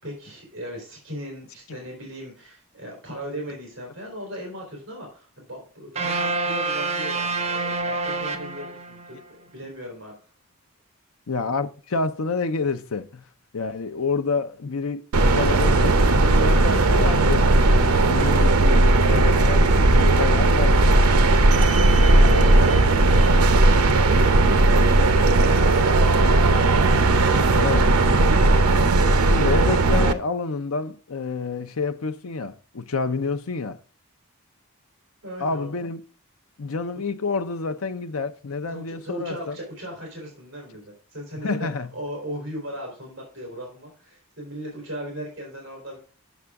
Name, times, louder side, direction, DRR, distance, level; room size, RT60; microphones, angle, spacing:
voice 1, 0.0-10.2 21.8-26.7 35.2-35.8 38.7-46.0, equal, 55° right, 3.4 m, -37 dB
sound 1, 6.0-9.2, right 3 dB, 30° right, 0.8 m, -27 dB
voice 2, 11.3-13.2 13.5-17.5 18.1-21.0 22.1-22.6 27.6-27.9 29.3-33.8 35.4-36.0 36.6-39.6 41.3-41.9, left 4 dB, 75° left, 0.6 m, -28 dB
sound 2, 15.1-30.1, right 2 dB, 85° right, 0.8 m, -17 dB
8.1 x 6.6 x 3.5 m
head